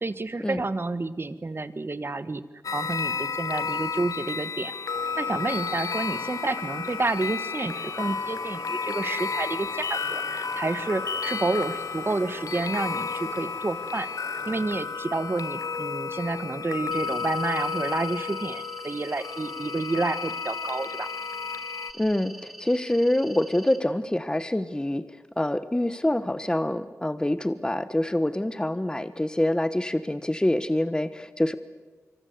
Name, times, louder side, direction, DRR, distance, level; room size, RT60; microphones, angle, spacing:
voice 1, 0.0-2.4 2.7-4.7 5.2-21.1, right 3 dB, 45° right, 13 dB, 1.4 m, -30 dB
sound 1, 2.6-21.9, left 5 dB, 80° left, 1.1 m, -32 dB
sound 2, 4.8-14.6, left 1 dB, 30° left, 5.1 m, -46 dB
sound 3, 16.9-23.8, right 1 dB, 5° right, 4.0 m, -45 dB
voice 2, 22.0-25.0 25.4-31.5, left 1 dB, 15° left, 12 dB, 1.2 m, -26 dB
25.5 x 24.0 x 8.0 m, 1.3 s
cardioid pair, 50°, 6 cm